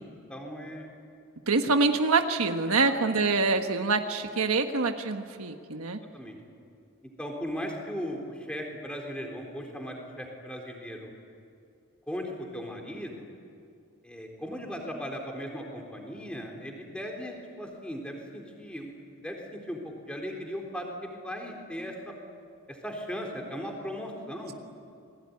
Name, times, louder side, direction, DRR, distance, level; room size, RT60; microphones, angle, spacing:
voice 1, 0.3-0.9 5.9-6.4 7.2-11.1 12.1-13.3 14.0-18.9 19.2-22.1 22.7-24.5, equal, 5° left, 1 dB, 3.9 m, -37 dB
voice 2, 1.5-6.0, right 3 dB, 90° right, 5 dB, 1.4 m, -25 dB
29.0 x 21.0 x 9.8 m, 2.5 s
head